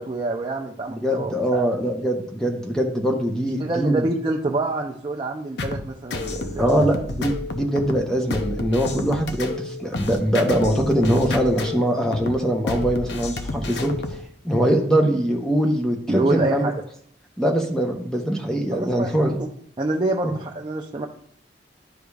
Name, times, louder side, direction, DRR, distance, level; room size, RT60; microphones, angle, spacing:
voice 1, 0.0-1.7 3.6-6.8 16.1-16.7 18.7-19.5 19.8-21.1, right 2 dB, 25° right, -1 dB, 0.5 m, -26 dB
voice 2, 0.9-4.0 6.6-14.2 14.4-16.7 17.4-19.4, equal, 5° left, 2 dB, 0.8 m, -22 dB
sound 1, 5.6-14.3, left 2 dB, 65° left, 0.6 m, -31 dB
11.5 x 5.0 x 2.4 m, 0.63 s
head